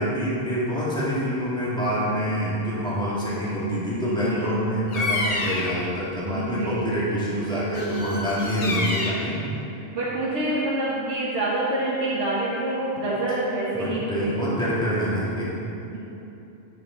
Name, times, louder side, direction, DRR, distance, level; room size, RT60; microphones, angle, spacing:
voice 1, 0.0-9.4 13.8-15.5, equal, 5° left, -9 dB, 2.0 m, -26 dB
voice 2, 4.0-4.6 6.3-6.9 9.9-14.4, right 1 dB, 75° right, -8 dB, 1.5 m, -27 dB
Bird vocalization bird call bird song, 4.9-5.9 7.7-9.3, left 2 dB, 35° left, 0.8 m, -28 dB
9.3 x 7.0 x 3.8 m, 2.9 s
omnidirectional pair, 1.2 m